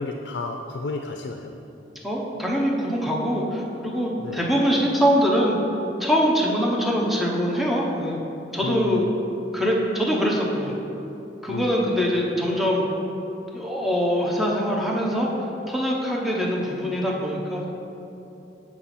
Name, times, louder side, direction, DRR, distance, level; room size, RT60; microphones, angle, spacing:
voice 1, 0.0-1.5 4.2-4.5 8.6-9.1 11.5-12.1, left 3 dB, 75° left, 4 dB, 0.4 m, -32 dB
voice 2, 2.0-5.6 6.0-8.2 8.5-9.1 9.5-10.7 11.4-12.9 13.5-15.3 15.7-17.7, equal, ahead, -3 dB, 0.8 m, -23 dB
7.5 x 6.0 x 4.2 m, 3.0 s
head